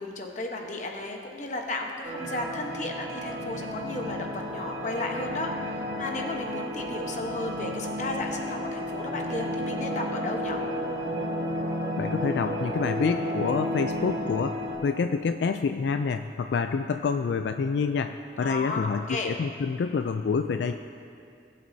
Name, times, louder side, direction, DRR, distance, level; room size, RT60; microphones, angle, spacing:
voice 1, 0.0-10.6 18.4-19.3, left 2 dB, 45° left, 2 dB, 1.0 m, -34 dB
sound 1, 2.0-14.8, equal, 60° right, 1.6 m, -32 dB
voice 2, 12.0-20.7, left 5 dB, 80° left, 7 dB, 0.3 m, -27 dB
19.5 x 7.6 x 2.7 m, 2.5 s
head